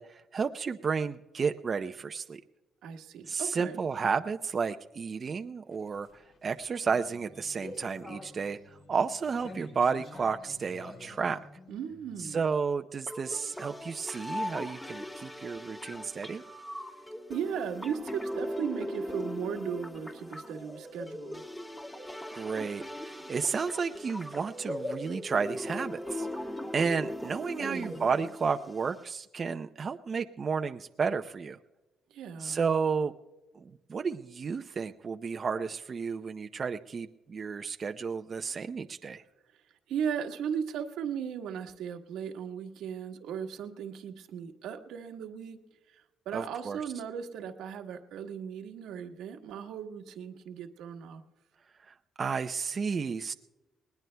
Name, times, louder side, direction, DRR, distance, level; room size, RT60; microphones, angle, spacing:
voice 1, 0.0-2.4 3.3-11.4 12.2-16.4 22.3-26.3 26.7-31.6 32.4-33.1 33.5-39.2 46.3-46.8 51.9-53.3, right 5 dB, 40° right, 6 dB, 0.5 m, -32 dB
voice 2, 2.8-3.8 11.7-12.5 17.3-21.4 27.6-28.0 32.1-32.6 39.9-45.6 45.9-51.2, right 8 dB, 85° right, 4 dB, 1.3 m, -37 dB
sound 1, 5.6-12.5, left 2 dB, 65° left, 5.6 m, -49 dB
sound 2, 13.1-29.1, left 1 dB, 15° left, 2.2 m, -39 dB
20.0 x 20.0 x 2.2 m, 1.0 s
cardioid pair, 90°, 0 cm